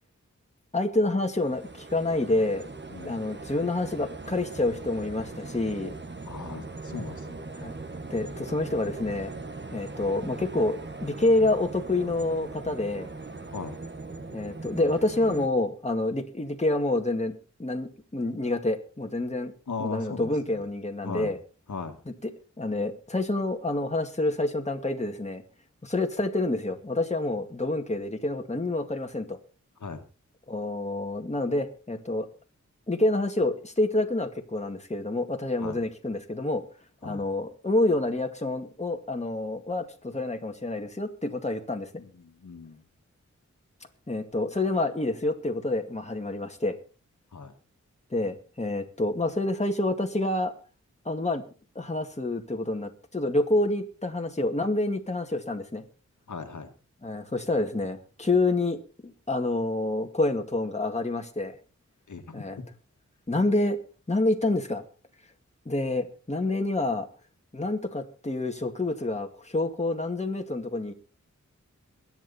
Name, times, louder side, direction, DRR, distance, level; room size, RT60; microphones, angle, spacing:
voice 1, 0.7-2.7 3.0-5.9 7.6-7.7 8.1-9.3 9.7-13.1 14.3-17.3 17.6-19.5 19.8-21.4 22.1-22.3 22.6-25.4 25.8-29.4 30.5-32.3 32.9-36.6 37.0-41.9 44.1-46.8 48.1-50.5 51.1-51.4 51.8-55.8 57.0-61.5 62.3-62.6 63.3-63.8 64.1-64.8 65.7-67.1 67.5-70.9, left 2 dB, 20° left, 4 dB, 2.2 m, -28 dB
sound 1, 1.1-15.5, right 3 dB, 35° right, 1.8 m, -40 dB
voice 2, 2.9-3.2 6.3-7.4 13.5-13.8 19.7-20.7 21.0-21.3 21.7-22.0 29.8-30.0 35.6-35.8 37.0-37.2 42.0-42.8 47.3-47.5 56.3-56.7 62.1-62.7, left 4 dB, 75° left, 5 dB, 2.1 m, -38 dB
22.5 x 9.3 x 4.2 m, 0.36 s
wide cardioid pair, 65°, 30 cm